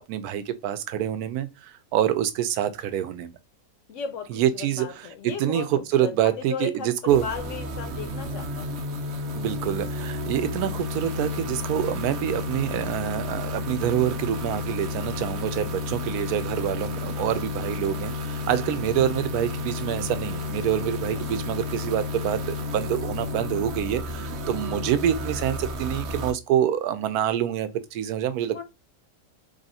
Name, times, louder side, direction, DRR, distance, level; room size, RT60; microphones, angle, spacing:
voice 1, 0.1-3.3 4.3-4.9 5.4-5.7 5.9-7.2 9.3-28.6, right 10 dB, 75° right, 1.1 m, -26 dB
voice 2, 3.9-8.8 21.1-21.4 28.5-28.6, left 6 dB, 65° left, 0.8 m, -36 dB
sound 1, 7.1-26.3, left 3 dB, 55° right, 0.8 m, -32 dB
3.4 x 2.6 x 4.1 m
omnidirectional pair, 1.7 m